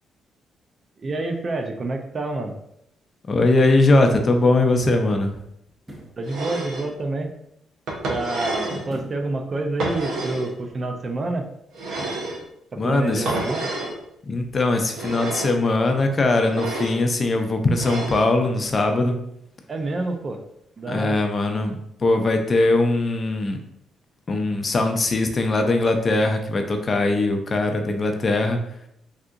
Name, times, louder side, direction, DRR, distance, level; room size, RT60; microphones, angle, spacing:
voice 1, 1.0-2.6 6.2-7.3 8.1-11.5 12.8-13.7 19.7-20.4 20.8-21.2, right 2 dB, 40° right, 5 dB, 0.4 m, -28 dB
voice 2, 3.3-5.4 12.8-13.3 14.2-19.2 20.9-23.6 24.3-28.8, left 2 dB, 35° left, 5 dB, 0.4 m, -21 dB
sound 1, 5.7-6.2 8.9-9.3 9.8-9.9, equal, 15° right, 0.7 m, -40 dB
sound 2, 6.2-6.9 7.9-8.8 9.8-10.5 11.7-12.4 13.3-14.0 14.9-15.6 16.4-17.0 17.7-18.3, right 2 dB, 80° right, 0.8 m, -29 dB
3.4 x 2.7 x 2.5 m, 0.76 s
cardioid pair, 90°, 0 cm